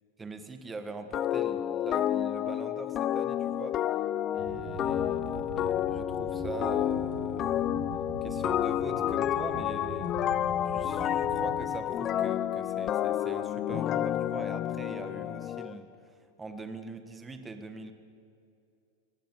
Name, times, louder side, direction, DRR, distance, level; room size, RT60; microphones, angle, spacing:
voice 1, 0.2-3.8 4.3-7.7 8.2-10.3 10.6-17.9, right 3 dB, 10° right, 8 dB, 1.5 m, -43 dB
sound 1, 1.1-15.7, left 11 dB, 30° left, 0.5 m, -30 dB
sound 2, 4.4-11.6, right 3 dB, 50° right, 6.4 m, -42 dB
18.5 x 15.5 x 9.8 m, 2.4 s
supercardioid pair, 145°, 0 cm